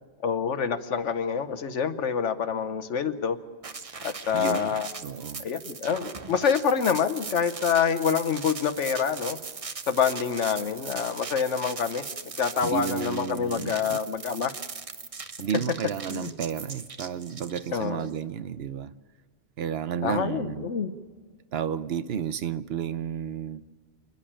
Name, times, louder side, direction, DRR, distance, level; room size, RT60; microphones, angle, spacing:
voice 1, 0.2-3.4 4.0-4.9 5.4-9.4 9.9-12.0 12.4-14.5 16.1-16.3 17.7-18.1 20.0-20.9, left 7 dB, 90° left, 1.3 m, -26 dB
sound 1, 3.6-18.1, right 5 dB, 35° right, 0.7 m, -39 dB
voice 2, 4.3-4.8 5.0-5.5 12.6-14.0 15.4-18.9 19.6-20.7 21.5-23.6, right 8 dB, 65° right, 0.9 m, -32 dB
27.5 x 10.5 x 8.8 m
omnidirectional pair, 1.2 m